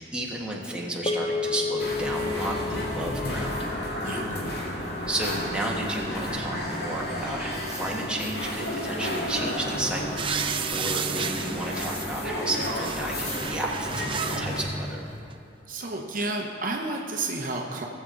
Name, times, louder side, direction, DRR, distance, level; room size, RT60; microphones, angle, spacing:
voice 1, 0.0-3.5 5.1-15.0, right 1 dB, 5° right, -3 dB, 1.3 m, -32 dB
sound 1, 1.1-5.6, left 4 dB, 30° left, 0.4 m, -33 dB
sound 2, 1.8-14.6, left 1 dB, 60° left, 2.0 m, -32 dB
voice 2, 4.0-4.4 15.7-17.8, right 2 dB, 50° right, 1 dB, 0.8 m, -31 dB
sound 3, 10.2-12.1 12.4-14.4 15.3-15.4, right 7 dB, 30° right, 0.4 m, -32 dB
19.0 x 7.2 x 3.8 m, 2.6 s
head